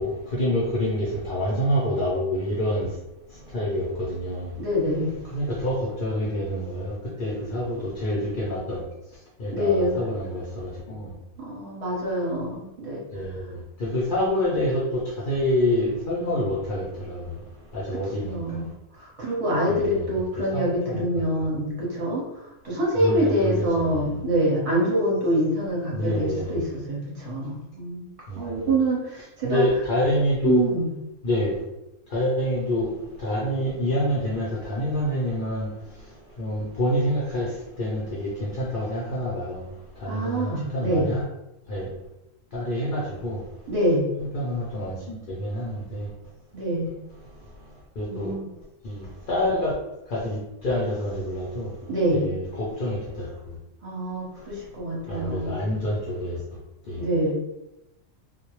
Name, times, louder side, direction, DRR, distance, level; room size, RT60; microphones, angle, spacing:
voice 1, 0.0-2.9 3.5-4.5 5.3-6.9 7.2-8.8 9.4-11.1 13.1-13.4 13.8-17.2 17.7-18.3 19.7-21.2 22.9-24.1 25.9-26.6 28.3-28.4 29.4-30.6 31.2-31.6 32.1-32.9 33.2-35.7 36.4-37.5 37.8-39.6 40.0-41.2 41.7-41.9 42.5-43.4 44.3-46.1 48.0-48.3 48.8-49.7 50.1-50.4 50.6-51.7 52.2-53.2 55.1-56.4 56.9-57.0, left 1 dB, 60° left, -5 dB, 0.6 m, -27 dB
voice 2, 4.6-5.2 9.5-10.0 11.4-13.0 18.2-18.7 19.2-22.2 22.6-28.1 28.4-29.6 30.4-30.9 40.1-41.1 43.7-44.1 46.5-46.9 48.1-48.5 51.9-52.3 53.8-55.6 57.0-57.3, right 1 dB, 30° right, -5 dB, 0.8 m, -25 dB
2.1 x 2.0 x 2.9 m, 0.90 s
omnidirectional pair, 1.3 m